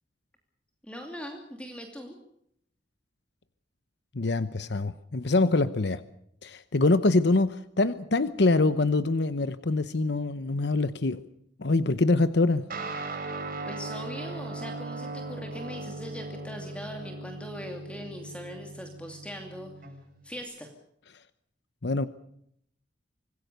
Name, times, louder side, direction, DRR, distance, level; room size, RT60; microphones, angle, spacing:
voice 1, 0.8-2.1 13.7-19.7 20.2-20.7, equal, 5° left, 2.6 m, -40 dB
voice 2, 4.1-6.0 6.4-11.2 11.6-12.7 21.8-22.1, left 2 dB, 65° left, 0.9 m, -24 dB
Guitar, 12.7-20.4, right 3 dB, 50° right, 6.8 m, -38 dB
26.0 x 19.5 x 6.8 m
head